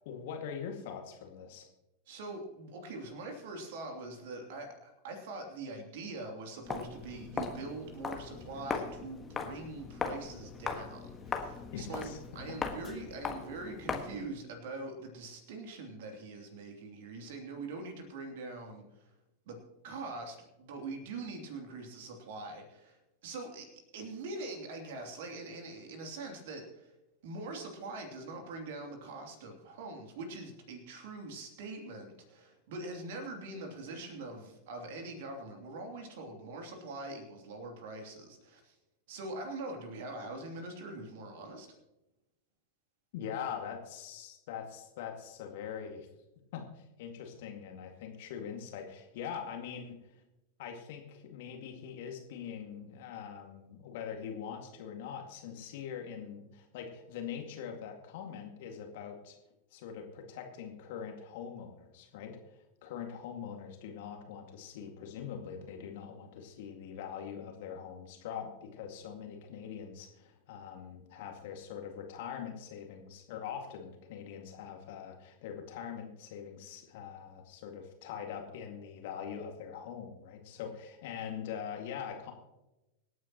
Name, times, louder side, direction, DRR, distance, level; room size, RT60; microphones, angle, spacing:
voice 1, 0.0-1.7 11.7-12.2 43.1-46.1 46.5-50.0 50.6-59.4 59.7-62.4 62.8-82.3, left 8 dB, 50° left, 3 dB, 2.1 m, -43 dB
voice 2, 2.1-19.1 19.5-19.6 19.8-23.7 23.9-26.9 27.2-38.8 39.1-41.7, right 2 dB, 55° right, 3 dB, 2.9 m, -43 dB
Walk footsteps, 6.6-14.3, left 5 dB, 20° left, 1.5 m, -39 dB
25.5 x 9.2 x 3.0 m, 0.98 s
figure-of-eight pair, 90°, 0 cm